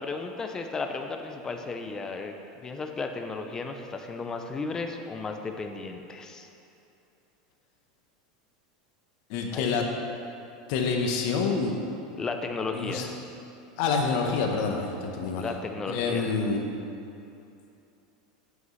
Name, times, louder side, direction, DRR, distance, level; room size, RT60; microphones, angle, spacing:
voice 1, 0.0-2.3 2.6-6.5 9.5-9.6 12.2-13.1 15.4-16.4, left 4 dB, 15° left, 4 dB, 0.5 m, -34 dB
voice 2, 9.3-9.8 10.7-11.7 12.7-13.0 13.8-15.5 15.9-16.6, left 5 dB, 55° left, 2 dB, 1.0 m, -27 dB
8.1 x 7.6 x 3.2 m, 2.7 s
supercardioid pair, 145°, 4 cm